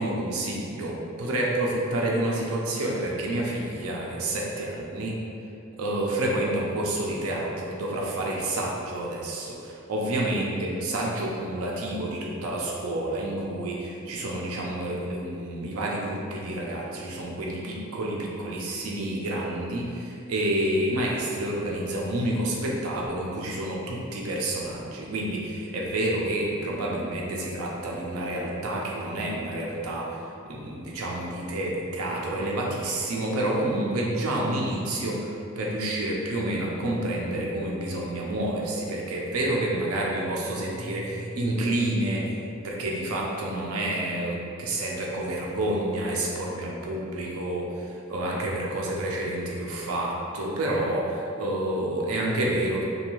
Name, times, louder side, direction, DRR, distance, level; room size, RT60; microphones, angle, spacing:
voice 1, 0.0-5.2 5.8-42.4 42.6-52.8, right 1 dB, 80° right, -2 dB, 0.5 m, -29 dB
2.6 x 2.3 x 2.9 m, 2.6 s
head